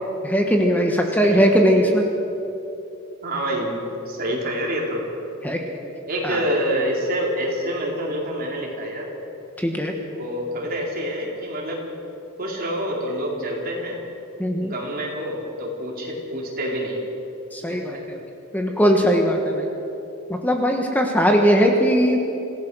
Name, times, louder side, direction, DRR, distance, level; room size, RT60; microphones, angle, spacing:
voice 1, 0.2-2.0 5.4-5.6 6.2-6.4 9.6-9.9 14.4-14.7 17.5-18.2 18.5-19.7 20.4-22.2, equal, 10° left, 2 dB, 1.4 m, -19 dB
voice 2, 3.2-3.8 4.1-5.1 6.1-9.1 10.1-11.8 12.4-14.0 14.6-17.0 17.7-18.0, equal, 45° right, -2 dB, 4.1 m, -27 dB
26.5 x 16.0 x 6.3 m, 2.9 s
head